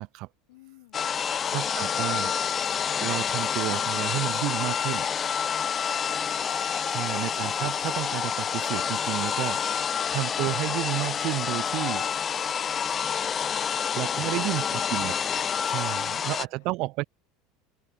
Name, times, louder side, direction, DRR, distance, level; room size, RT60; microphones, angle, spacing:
voice 1, 0.5-2.5 5.8-6.2 15.9-16.7, left 20 dB, 85° left, 7.5 m, -57 dB
sound 1, 0.9-16.5, left 7 dB, 25° left, 0.4 m, -28 dB
sound 2, 1.1-8.4 8.8-10.0, left 27 dB, 60° left, 7.8 m, -60 dB
voice 2, 1.5-2.3 3.0-5.1 6.9-9.6 10.1-12.0 13.9-14.6 14.9-15.1 15.7-17.0, right 21 dB, 55° right, 1.1 m, -31 dB
open air
supercardioid pair, 145°, 0 cm